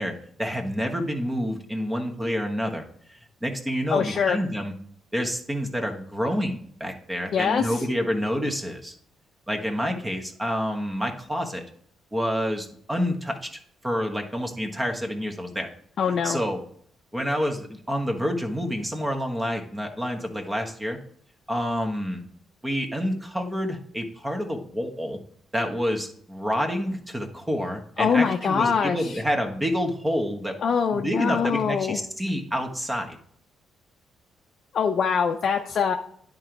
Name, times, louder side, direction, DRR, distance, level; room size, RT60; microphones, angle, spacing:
voice 1, 0.0-4.7 5.1-8.9 9.5-11.6 12.1-15.7 16.2-16.6 17.1-21.0 21.5-22.2 22.6-25.2 25.5-30.6 30.9-33.2, equal, 15° right, 3 dB, 1.2 m, -28 dB
voice 2, 3.9-4.4 7.3-7.8 16.0-16.4 28.0-29.2 30.6-32.0 34.7-35.9, left 6 dB, 55° left, 3 dB, 0.6 m, -23 dB
9.9 x 3.9 x 4.6 m, 0.63 s
cardioid pair, 90°, 0 cm